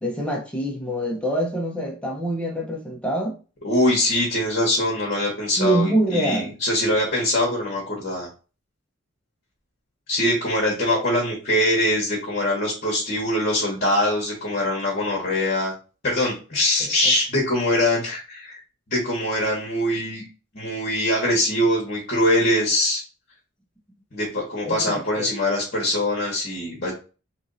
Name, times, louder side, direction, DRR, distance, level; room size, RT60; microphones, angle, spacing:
voice 1, 0.0-3.4 5.6-6.5 10.9-11.0 24.6-25.3, right 1 dB, 5° left, 0.7 m, -25 dB
voice 2, 3.6-8.3 10.1-15.7 16.0-18.6 18.9-20.2 20.5-23.0 24.1-26.9, left 1 dB, 45° left, 1.1 m, -23 dB
3.0 x 2.7 x 3.8 m
head